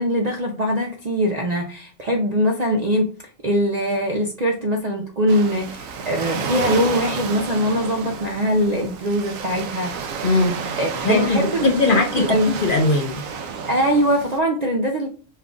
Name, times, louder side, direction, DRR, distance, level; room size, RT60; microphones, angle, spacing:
voice 1, 0.0-3.1 3.4-10.0 10.8-12.5 13.7-15.1, equal, 55° right, 0.4 m, -22 dB
Waves surf, 5.3-14.4, right 5 dB, 80° right, 1.0 m, -31 dB
voice 2, 10.2-10.6 11.0-13.2, left 3 dB, 55° left, 0.6 m, -20 dB
5.4 x 2.4 x 3.7 m
omnidirectional pair, 1.4 m